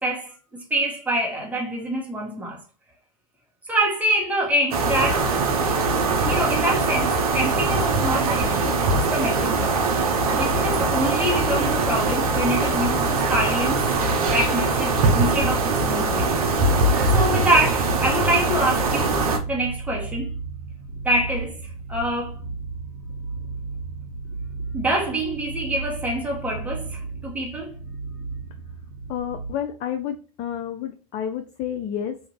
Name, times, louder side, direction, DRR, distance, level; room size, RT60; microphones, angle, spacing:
voice 1, 0.0-2.6 3.7-5.3 6.2-9.8 10.3-13.9 14.3-16.3 17.1-20.3 21.0-21.6 21.9-22.4 24.7-27.7, right 1 dB, 10° right, 1.1 m, -25 dB
sound 1, 4.7-19.4, right 3 dB, 85° right, 0.6 m, -22 dB
sound 2, 17.1-29.5, right 4 dB, 90° left, 1.1 m, -34 dB
voice 2, 29.1-32.2, left 9 dB, 45° left, 0.5 m, -30 dB
2.6 x 2.5 x 3.0 m
hypercardioid pair, 85°, 18 cm